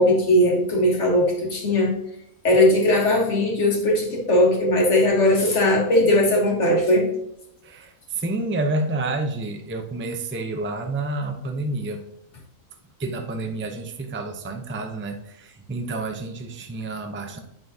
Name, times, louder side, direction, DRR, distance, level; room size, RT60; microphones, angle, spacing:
voice 1, 0.0-1.9 2.4-7.1, left 1 dB, 55° left, 0 dB, 1.9 m, -19 dB
voice 2, 7.6-12.0 13.0-17.4, right 2 dB, 15° right, 5 dB, 0.4 m, -29 dB
9.0 x 6.2 x 2.8 m, 0.76 s
omnidirectional pair, 1.5 m